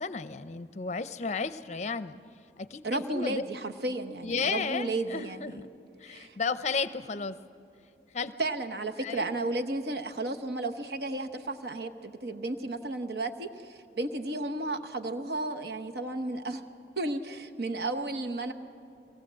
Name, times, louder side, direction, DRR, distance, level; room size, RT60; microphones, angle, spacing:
voice 1, 0.0-2.2 2.6-3.4 4.2-5.7 6.0-7.4 8.1-8.3 9.0-9.3, left 4 dB, 40° left, 13 dB, 0.6 m, -33 dB
voice 2, 2.8-5.6 6.1-6.4 8.4-16.6 17.0-18.5, right 2 dB, 65° right, 6 dB, 1.0 m, -33 dB
23.0 x 18.0 x 7.5 m, 2.4 s
head